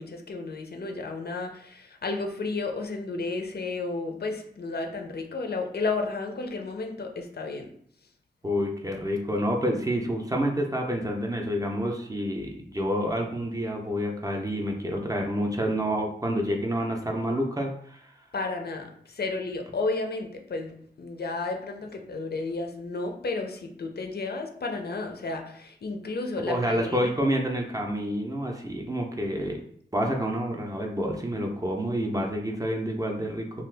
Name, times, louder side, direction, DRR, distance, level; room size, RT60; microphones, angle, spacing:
voice 1, 0.0-7.7 18.3-27.1, left 3 dB, 55° left, 4 dB, 0.5 m, -32 dB
voice 2, 8.4-18.1 26.5-29.6 29.9-33.6, equal, 20° right, 1 dB, 0.5 m, -28 dB
2.7 x 2.4 x 3.3 m, 0.64 s
wide cardioid pair, 95°, 19 cm